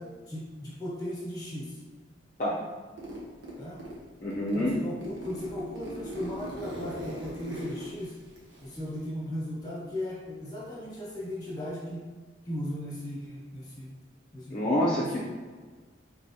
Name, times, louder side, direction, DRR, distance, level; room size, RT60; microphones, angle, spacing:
voice 1, 0.0-1.8 3.6-3.8 4.5-8.1 8.6-12.0 12.4-13.9 14.3-14.6 15.0-15.2, left 1 dB, 20° left, -6 dB, 1.3 m, -37 dB
Zipper (clothing), 3.0-4.0 4.3-9.0, right 1 dB, 80° right, 1.1 m, -40 dB
voice 2, 4.2-4.8 14.5-15.2, left 1 dB, 40° left, -7 dB, 0.5 m, -27 dB
4.9 x 3.0 x 2.8 m, 1.4 s
head